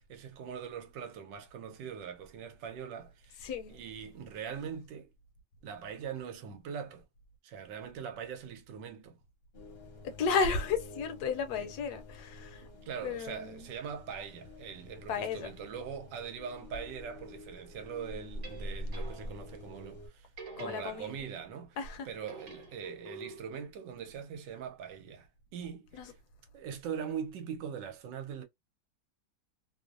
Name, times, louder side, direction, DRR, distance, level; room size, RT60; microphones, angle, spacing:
voice 1, 0.0-3.4 3.7-5.1 5.6-7.0 7.4-9.2 11.6-11.7 12.9-20.3 20.6-21.8 22.1-26.1 26.5-28.4, right 7 dB, 85° right, 1.3 m, -42 dB
voice 2, 3.4-3.8 10.0-12.7 13.0-13.7 15.1-15.5 20.6-21.3 21.8-22.1 25.9-26.1, left 5 dB, 70° left, 1.0 m, -33 dB
sound 1, 9.5-20.1, left 1 dB, 50° left, 0.8 m, -46 dB
sound 2, 18.2-19.6 20.4-21.5 22.2-23.7, right 3 dB, 45° right, 1.4 m, -48 dB
3.0 x 2.0 x 2.4 m
omnidirectional pair, 1.9 m